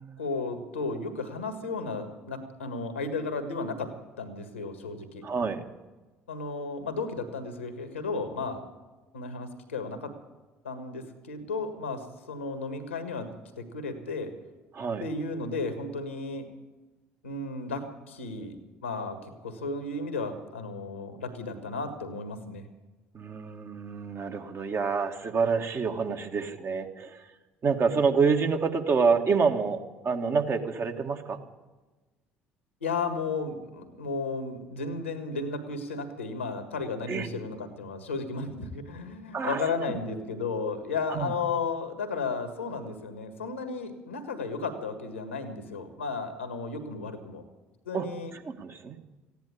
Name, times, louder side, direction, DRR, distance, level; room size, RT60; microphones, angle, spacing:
voice 1, 0.2-3.9 4.2-5.2 6.3-8.6 9.1-10.1 10.6-13.3 13.6-14.3 15.0-16.5 17.2-22.7 32.8-47.4 47.8-48.3, left 4 dB, 90° left, 9 dB, 1.6 m, -34 dB
voice 2, 5.2-5.6 14.7-15.1 23.1-27.2 27.6-31.4 37.1-37.3 39.3-39.6 41.1-41.3 47.9-48.1 48.4-49.0, right 5 dB, 40° right, 5 dB, 1.7 m, -27 dB
15.0 x 10.5 x 8.6 m, 1.2 s
hypercardioid pair, 55°, 6 cm